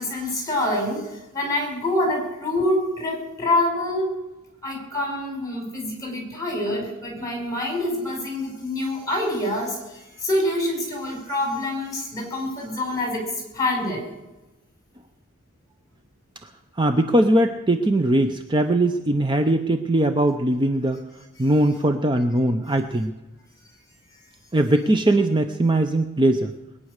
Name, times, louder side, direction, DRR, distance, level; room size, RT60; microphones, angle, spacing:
voice 1, 0.0-4.2 4.6-13.3 13.5-14.0, left 1 dB, 15° left, 1 dB, 5.5 m, -26 dB
voice 2, 16.8-21.0 21.4-23.1 24.5-26.5, right 1 dB, 20° right, 7 dB, 0.7 m, -20 dB
21.0 x 9.7 x 6.6 m, 1.0 s
head